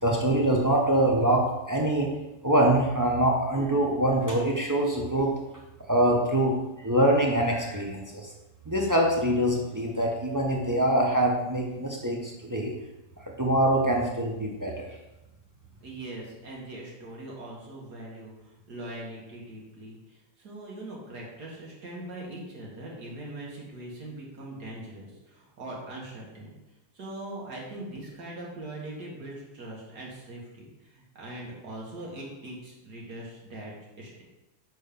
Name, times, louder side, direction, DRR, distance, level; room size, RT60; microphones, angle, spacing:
voice 1, 0.0-2.1 2.4-5.3 5.9-8.3 8.7-12.7 13.2-15.0, right 1 dB, 20° right, -1 dB, 0.5 m, -24 dB
voice 2, 15.8-26.5 26.9-34.2, right 1 dB, 70° right, -4 dB, 2.2 m, -41 dB
6.3 x 4.5 x 5.2 m, 1.0 s
omnidirectional pair, 1.8 m